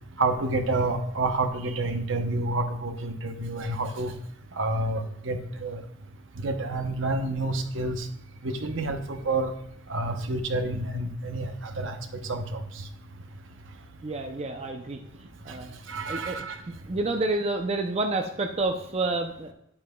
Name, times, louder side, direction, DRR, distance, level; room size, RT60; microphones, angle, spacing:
voice 1, 0.2-4.1 4.6-5.8 6.4-8.1 8.4-9.5 9.9-12.6 15.5-15.6 15.9-16.6, right 2 dB, 65° right, 7 dB, 0.8 m, -29 dB
voice 2, 14.0-15.0 15.4-15.7 16.1-16.4 16.9-19.5, right 2 dB, 30° right, 4 dB, 0.5 m, -29 dB
10.5 x 8.6 x 2.3 m, 0.78 s
head